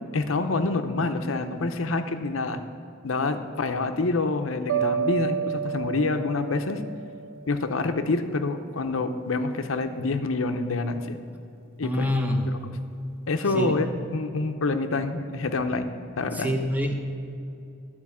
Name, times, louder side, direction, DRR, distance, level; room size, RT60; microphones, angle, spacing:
voice 1, 0.1-2.6 3.0-6.8 7.5-11.2 11.8-12.1 13.3-13.9 14.1-15.9 16.2-16.5, left 3 dB, 80° left, 8 dB, 0.7 m, -27 dB
sound 1, 4.7-7.8, right 8 dB, 80° right, 0.4 m, -30 dB
voice 2, 11.8-12.5 13.5-13.8 16.4-17.0, equal, 10° right, 2 dB, 0.9 m, -26 dB
12.5 x 4.5 x 8.4 m, 2.7 s
head